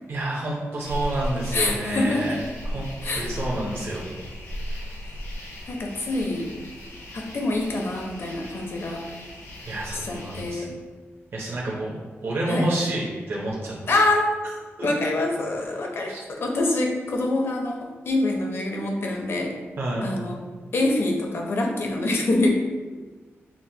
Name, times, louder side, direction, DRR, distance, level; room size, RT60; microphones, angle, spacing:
voice 1, 0.1-2.4 2.6-4.1 4.7-4.8 9.6-10.7 11.3-13.7 14.8-14.9 16.1-16.2 19.8-20.1, right 1 dB, 55° right, -5 dB, 0.6 m, -29 dB
sound 1, 0.8-10.5, equal, 75° left, 1.0 m, -36 dB
voice 2, 1.5-2.4 3.0-3.6 5.0-5.1 5.7-6.5 7.1-9.0 9.9-10.8 12.5-12.7 13.9-14.4 14.8-19.5 20.0-20.4 20.7-22.5, left 2 dB, 55° left, 1 dB, 0.6 m, -25 dB
5.8 x 2.0 x 2.7 m, 1.4 s
wide cardioid pair, 145°, 5 cm